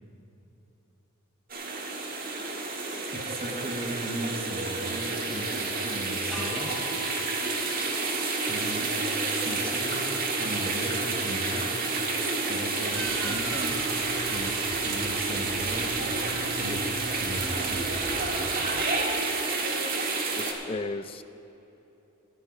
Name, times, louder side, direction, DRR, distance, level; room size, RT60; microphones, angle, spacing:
sound 1, 1.5-20.5, right 3 dB, 45° right, 1.5 m, -29 dB
voice 1, 3.1-6.9 8.5-8.9 9.3-11.8 12.5-13.9 14.3-14.6 14.8-15.9 16.6-16.9 17.2-18.3, right 1 dB, 25° right, 3 dB, 1.1 m, -37 dB
sound 2, 6.3-9.2, left 3 dB, 5° left, 3.3 m, -44 dB
sound 3, 12.9-18.5, right 3 dB, 75° right, 1.3 m, -39 dB
voice 2, 20.4-21.2, left 3 dB, 25° left, 12 dB, 0.4 m, -35 dB
14.5 x 5.4 x 9.2 m, 3.0 s
head